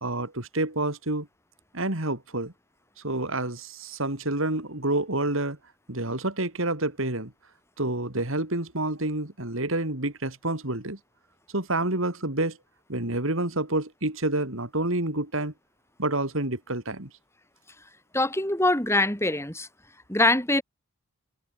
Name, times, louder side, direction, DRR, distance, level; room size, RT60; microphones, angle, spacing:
voice 1, 0.0-1.3 1.7-2.5 3.0-5.6 5.9-7.3 7.8-11.0 11.5-12.6 12.9-15.5 16.0-17.1, right 2 dB, 65° right, 3.5 m, -28 dB
voice 2, 18.1-19.7 20.1-20.6, left 2 dB, 10° left, 7.1 m, -23 dB
head